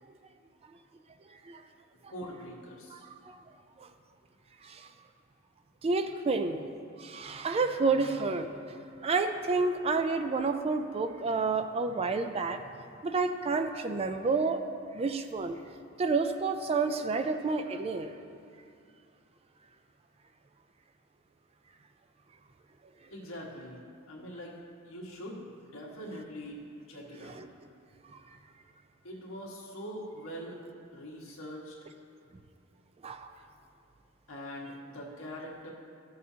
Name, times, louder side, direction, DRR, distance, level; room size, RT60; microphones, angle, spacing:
voice 1, 2.1-3.1 23.1-24.6 24.8-27.4 29.0-30.6 30.9-31.7 34.3-35.7, equal, 70° left, -3 dB, 1.5 m, -43 dB
voice 2, 2.9-3.4 4.6-4.9 5.8-6.7 7.0-8.5 9.0-12.6 13.0-14.6 14.9-15.6 16.0-18.1 27.2-27.5 33.0-33.3, right 4 dB, 30° right, 8 dB, 0.3 m, -29 dB
14.0 x 6.6 x 2.8 m, 2.4 s
head